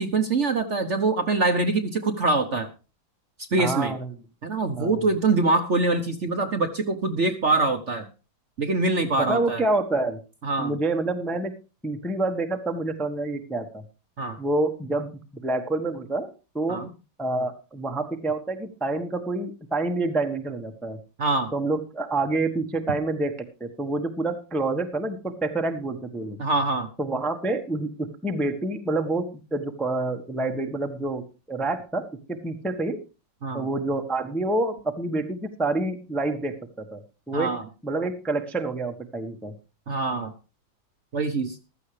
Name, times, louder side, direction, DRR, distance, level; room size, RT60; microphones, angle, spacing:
voice 1, 0.0-2.7 3.5-3.9 4.4-8.1 8.6-9.6 10.4-10.7 14.2-14.4 16.7-16.9 21.2-21.5 26.4-26.9 33.4-33.7 37.3-37.6 39.9-40.3 41.1-41.6, right 3 dB, 45° right, 7 dB, 1.1 m, -24 dB
voice 2, 3.6-4.1 4.8-5.0 9.2-10.2 10.6-11.5 11.8-13.8 14.4-15.1 15.4-16.3 16.5-16.8 17.2-21.0 21.5-26.4 27.0-27.9 28.2-33.0 33.5-37.0 37.3-37.6 37.8-39.5, right 2 dB, ahead, 5 dB, 0.8 m, -27 dB
15.0 x 13.0 x 3.3 m, 0.32 s
omnidirectional pair, 2.1 m